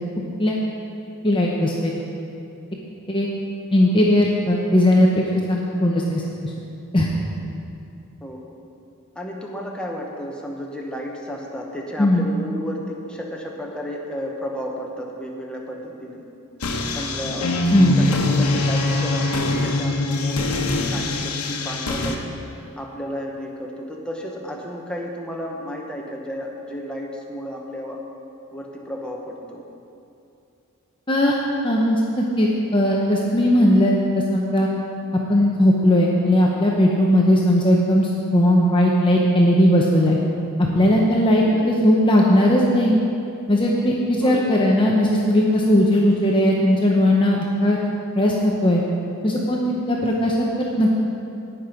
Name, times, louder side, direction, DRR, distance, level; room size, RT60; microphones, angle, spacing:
voice 1, 1.2-1.9 3.1-3.3 3.7-5.2 5.5-6.2 6.9-7.1 12.0-12.2 17.7-18.0 31.1-31.4 31.6-34.0 34.3-34.7 35.3-40.2 40.7-43.0 43.5-47.8 48.2-48.8 49.2-50.9, left 1 dB, 20° left, -2 dB, 0.8 m, -18 dB
voice 2, 8.2-8.6 9.1-16.2 16.9-17.5 18.0-22.2 22.8-28.0 28.5-29.6 41.4-41.7 44.2-44.6, equal, 5° left, -1 dB, 1.1 m, -33 dB
sound 1, 16.6-22.1, left 2 dB, 85° left, 1.1 m, -23 dB
18.0 x 6.0 x 5.1 m, 2.7 s
head